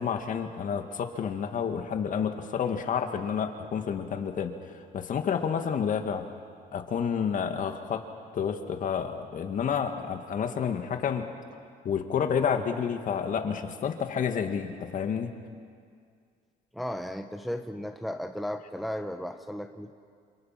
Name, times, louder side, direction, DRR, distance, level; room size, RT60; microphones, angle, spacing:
voice 1, 0.0-6.2 6.7-8.0 8.3-11.3 11.8-15.3, left 7 dB, 50° left, 6 dB, 2.1 m, -30 dB
voice 2, 16.7-19.9, equal, ahead, 6 dB, 1.0 m, -35 dB
28.0 x 27.0 x 6.0 m, 2.2 s
cardioid pair, 110°, 17 cm